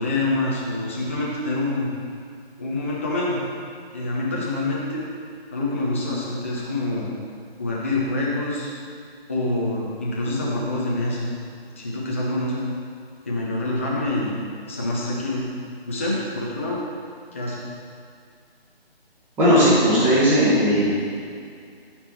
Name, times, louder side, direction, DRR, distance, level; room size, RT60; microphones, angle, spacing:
voice 1, 0.0-1.9 2.6-3.4 3.9-5.0 5.5-7.1 7.6-8.7 9.3-11.3 11.8-12.6 13.2-14.4 14.6-15.4 15.8-16.8 17.3-17.6, left 2 dB, 15° left, -6 dB, 0.5 m, -26 dB
voice 2, 19.4-20.9, equal, 5° right, -10 dB, 1.4 m, -17 dB
12.0 x 4.5 x 4.4 m, 2.3 s
figure-of-eight pair, 150°, 31 cm